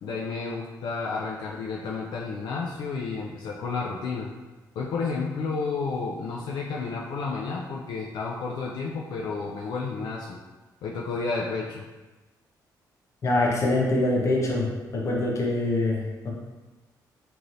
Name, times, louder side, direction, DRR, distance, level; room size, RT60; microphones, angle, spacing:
voice 1, 0.0-4.3 4.8-10.4 10.8-11.8, left 4 dB, 75° left, -2 dB, 0.3 m, -31 dB
voice 2, 13.2-14.7 14.9-16.3, left 2 dB, 45° left, -2 dB, 0.7 m, -24 dB
3.1 x 2.7 x 2.5 m, 1.2 s
cardioid pair, 115°, 7 cm